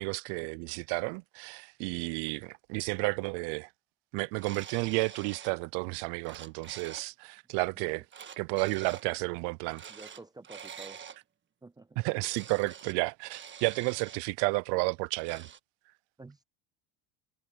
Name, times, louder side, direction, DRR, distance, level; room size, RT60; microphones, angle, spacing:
voice 1, 0.0-3.7 4.1-8.0 8.4-9.8 12.0-15.5, right 29 dB, 65° right, 0.5 m, -32 dB
sound 1, 4.4-5.6 6.0-7.1 8.1-9.1 9.7-11.2 12.2-13.0 13.3-14.2 15.1-15.6, right 7 dB, 25° right, 1.5 m, -47 dB
voice 2, 9.9-11.0 11.6-12.0 16.2-16.4, right 2 dB, 10° right, 0.5 m, -50 dB
cardioid pair, 130°, 43 cm